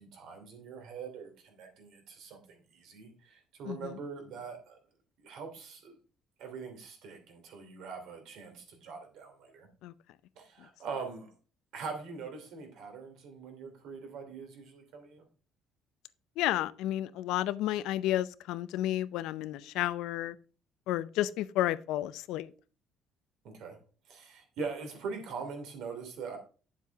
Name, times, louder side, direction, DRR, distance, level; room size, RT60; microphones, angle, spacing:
voice 1, 0.0-4.8 5.2-6.0 6.4-9.7 10.4-11.3 11.7-15.2 23.4-23.8 24.1-26.4, right 5 dB, 65° right, 2.8 m, -42 dB
voice 2, 3.6-3.9 9.8-9.9 16.4-20.4 20.9-22.5, left 14 dB, 80° left, 0.5 m, -31 dB
9.4 x 7.4 x 3.5 m
cardioid pair, 165°, 0 cm